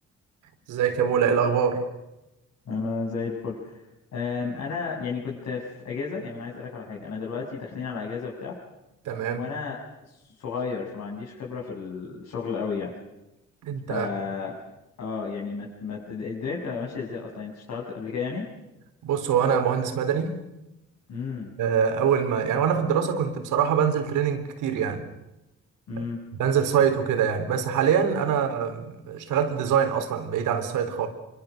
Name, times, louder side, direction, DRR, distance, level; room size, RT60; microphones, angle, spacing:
voice 1, 0.7-1.9 9.0-9.5 13.6-14.1 19.0-20.3 21.6-25.0 26.4-31.1, right 7 dB, 85° right, 7 dB, 3.8 m, -24 dB
voice 2, 2.7-3.8 4.1-8.5 9.3-9.8 10.0-12.9 13.9-14.5 15.0-18.5 21.1-21.5 25.9-26.2, left 5 dB, 65° left, -3 dB, 6.7 m, -32 dB
26.0 x 24.5 x 6.7 m, 0.94 s
cardioid pair, 90°, 30 cm